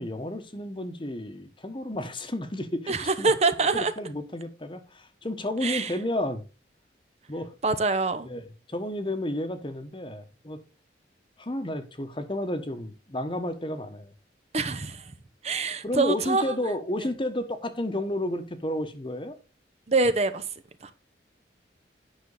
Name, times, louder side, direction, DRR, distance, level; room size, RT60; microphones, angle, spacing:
voice 1, 0.0-3.3 3.7-6.4 7.3-7.5 8.2-8.4 8.7-10.6 11.4-14.1 15.8-19.3, left 1 dB, 30° left, 1.1 m, -32 dB
voice 2, 2.9-3.9 5.6-5.9 7.6-8.3 14.5-15.1 15.4-16.5 19.9-20.5 20.8-20.9, right 3 dB, 35° right, 0.8 m, -25 dB
9.8 x 6.1 x 3.9 m
head